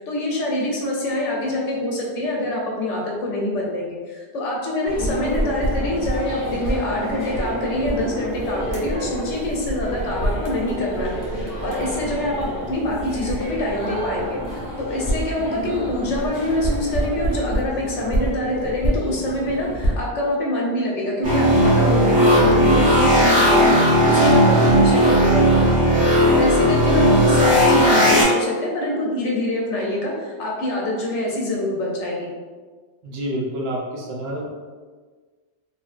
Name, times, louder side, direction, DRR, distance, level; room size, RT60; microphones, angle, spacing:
voice 1, 0.0-23.8 24.1-25.8 26.3-32.3, left 1 dB, 85° left, -2 dB, 0.9 m, -25 dB
sound 1, 4.9-19.9, equal, 20° left, 0.8 m, -27 dB
sound 2, 21.2-28.2, equal, 15° right, 1.4 m, -15 dB
voice 2, 33.0-34.5, equal, 65° right, -3 dB, 0.9 m, -28 dB
2.9 x 2.7 x 2.4 m, 1.4 s
omnidirectional pair, 1.2 m